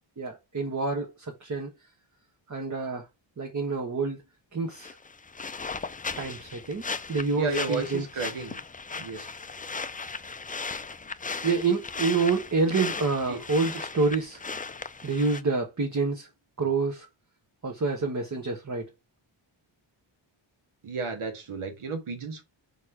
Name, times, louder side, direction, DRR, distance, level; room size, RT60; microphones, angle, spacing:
voice 1, 0.2-1.7 2.5-3.1 3.4-4.2 4.5-5.0 6.2-6.8 7.1-8.0 11.4-14.4 15.0-16.3 16.6-17.1 17.6-18.8, right 4 dB, 35° right, 1.1 m, -27 dB
sound 1, 4.7-15.4, left 4 dB, 20° left, 0.3 m, -37 dB
voice 2, 7.4-8.6 9.0-9.3 13.3-13.4 20.8-22.4, right 4 dB, 75° right, 1.9 m, -32 dB
4.9 x 4.2 x 4.6 m
wide cardioid pair, 140°, 50 cm